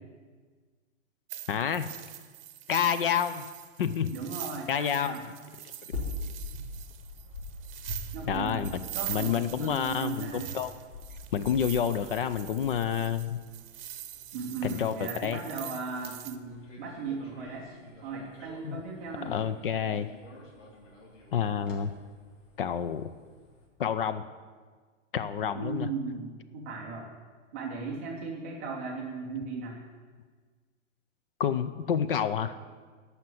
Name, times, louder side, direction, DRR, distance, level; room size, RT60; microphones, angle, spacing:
sound 1, 1.3-16.4, right 12 dB, 50° right, 0.8 m, -43 dB
voice 1, 1.5-1.9 2.7-3.4 3.8-4.1 4.7-5.2 8.3-8.8 9.1-10.7 11.3-13.4 14.6-15.4 18.6-18.8 19.2-20.1 21.3-21.9 22.6-23.1 23.8-24.2 25.1-25.9 31.4-32.5, left 8 dB, 45° left, 13 dB, 0.5 m, -29 dB
voice 2, 4.1-5.2 8.1-10.5 14.3-17.7 18.0-19.3 25.5-27.1 27.5-29.8, right 4 dB, 10° right, -2 dB, 0.4 m, -37 dB
sound 2, 5.9-23.7, left 2 dB, 85° left, 3.5 m, -45 dB
14.0 x 5.8 x 7.6 m, 1.5 s
hypercardioid pair, 170°, 37 cm